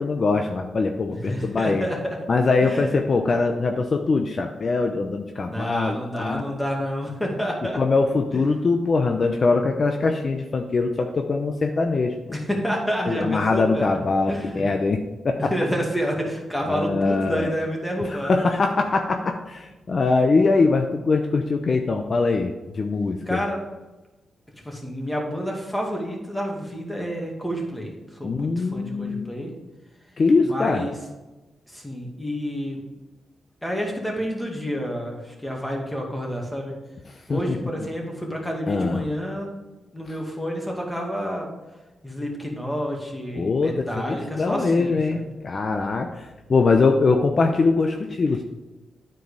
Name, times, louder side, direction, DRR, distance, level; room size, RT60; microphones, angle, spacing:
voice 1, 0.0-1.9 2.3-6.4 7.7-12.2 13.1-15.5 16.7-17.5 18.2-23.4 28.2-29.3 30.2-30.8 37.3-37.4 38.7-39.0 43.3-48.4, left 3 dB, 45° left, 4 dB, 0.7 m, -22 dB
voice 2, 1.1-2.2 2.6-3.2 5.5-7.8 8.3-8.4 12.3-14.0 14.3-14.6 15.4-18.4 18.6-18.7 23.3-23.6 24.6-29.5 30.4-31.0 31.7-32.8 33.6-36.8 37.3-39.5 39.9-41.5 42.0-45.2, equal, 5° left, -1 dB, 2.2 m, -29 dB
9.5 x 4.7 x 4.9 m, 1.1 s
cardioid pair, 75°, 0 cm